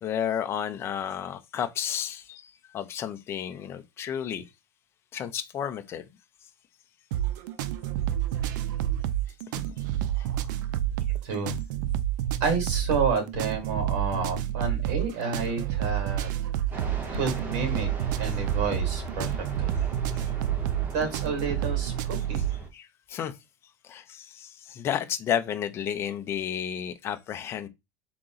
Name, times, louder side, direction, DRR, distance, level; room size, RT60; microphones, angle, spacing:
voice 1, 0.0-4.5 5.1-6.0 10.2-10.3 20.1-20.2 22.7-23.4 23.8-27.7, left 9 dB, 25° left, 0.5 m, -32 dB
sound 1, 7.1-22.6, right 12 dB, 80° right, 0.5 m, -29 dB
voice 2, 11.2-11.6 12.4-16.3 17.1-17.9 18.2-19.7 20.9-22.4, right 4 dB, 60° right, 2.4 m, -30 dB
Fixed-wing aircraft airplane, 16.7-22.7, right 3 dB, 20° right, 0.8 m, -37 dB
3.8 x 2.9 x 3.9 m
cardioid pair, 170°, 10 cm